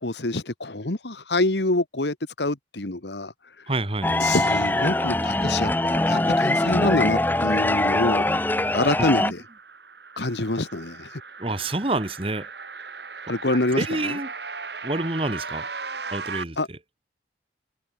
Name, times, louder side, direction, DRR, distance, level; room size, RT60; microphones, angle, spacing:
voice 1, 0.0-3.3 4.2-8.3 8.7-9.4 10.2-11.2 13.3-14.2 16.6-16.7, left 2 dB, 80° left, 1.9 m, -26 dB
voice 2, 3.7-4.1 8.3-8.4 9.2-9.3 11.4-12.5 13.8-14.3 14.8-15.6 16.1-16.6, right 2 dB, 30° right, 1.7 m, -27 dB
sound 1, 4.0-9.3, left 1 dB, 10° left, 0.6 m, -22 dB
sound 2, 8.7-16.4, right 4 dB, 75° right, 7.6 m, -38 dB
head